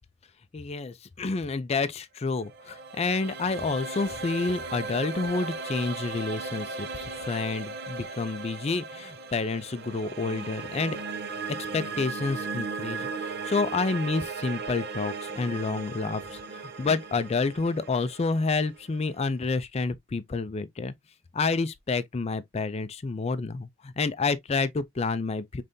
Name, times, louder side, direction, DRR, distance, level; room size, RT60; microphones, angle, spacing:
voice 1, 0.5-11.0 11.7-20.9 21.3-25.6, left 4 dB, 30° left, 0.4 m, -29 dB
sound 1, 2.3-19.4, right 4 dB, 50° right, 0.8 m, -37 dB
5.2 x 3.3 x 2.6 m
head